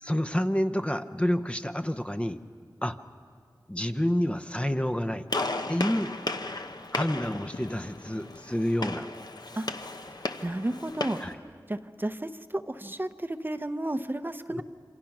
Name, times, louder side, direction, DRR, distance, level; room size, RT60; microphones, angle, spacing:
voice 1, 0.0-2.4 2.8-3.0 3.7-5.3 5.7-6.2 6.9-9.1 11.2-11.4 14.5-14.6, equal, 15° left, 8 dB, 0.7 m, -28 dB
Gunshot gunfire, 5.3-11.3, left 2 dB, 60° left, 0.9 m, -35 dB
voice 2, 10.4-11.2 11.7-14.6, right 1 dB, 25° right, 9 dB, 0.7 m, -32 dB
27.5 x 26.0 x 6.0 m, 2.1 s
wide cardioid pair, 65°, 8 cm